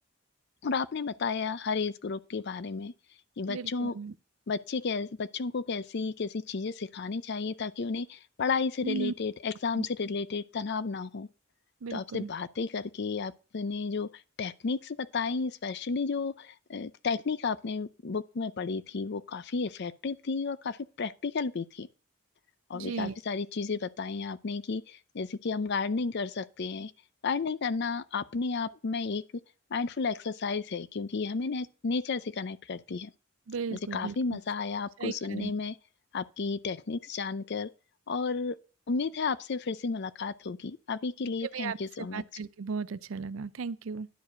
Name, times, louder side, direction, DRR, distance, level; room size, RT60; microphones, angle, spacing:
voice 1, 0.6-2.9 3.4-4.0 4.5-11.3 11.9-14.1 14.4-21.9 22.7-26.9 27.2-29.2 29.7-33.1 33.7-35.7 36.1-37.7 38.1-38.6 38.9-42.2, left 4 dB, 55° left, 0.5 m, -32 dB
voice 2, 3.5-4.1 8.8-9.1 9.8-9.9 11.8-12.3 22.7-23.2 33.5-34.4 35.0-35.5 41.5-41.8 42.1-44.1, right 5 dB, 80° right, 0.5 m, -36 dB
10.0 x 4.9 x 6.2 m
head